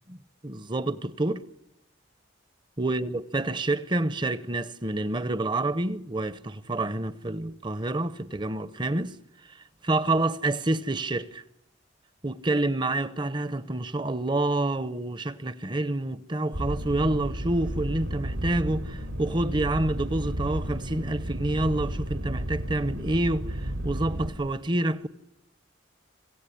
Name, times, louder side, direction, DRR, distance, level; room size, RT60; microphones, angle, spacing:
voice 1, 0.4-1.4 2.8-9.2 9.8-11.4 12.2-25.1, right 2 dB, 25° right, 0.8 m, -28 dB
sound 1, 16.5-24.3, right 1 dB, 85° right, 4.0 m, -32 dB
26.0 x 16.5 x 10.0 m
head